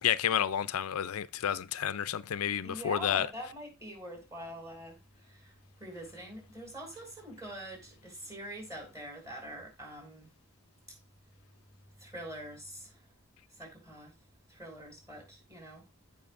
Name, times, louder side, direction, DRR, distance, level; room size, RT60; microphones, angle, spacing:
voice 1, 0.0-3.3, left 9 dB, 80° left, 0.5 m, -30 dB
voice 2, 2.6-5.0 5.3-5.5 5.8-10.3 12.0-12.9 13.6-14.1 14.5-15.9, equal, 15° right, 5.3 m, -44 dB
15.5 x 5.7 x 2.5 m
head